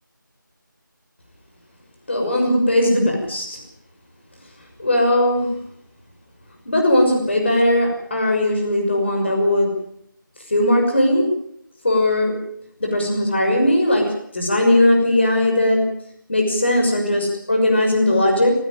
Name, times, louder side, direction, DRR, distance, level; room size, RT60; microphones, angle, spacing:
voice 1, 2.1-3.6 4.8-5.5 6.7-9.7 10.5-11.3 11.8-12.3 12.8-15.8 16.3-18.5, left 1 dB, 35° left, 1 dB, 6.1 m, -18 dB
20.5 x 16.5 x 9.1 m, 0.70 s
figure-of-eight pair, 170°, 11 cm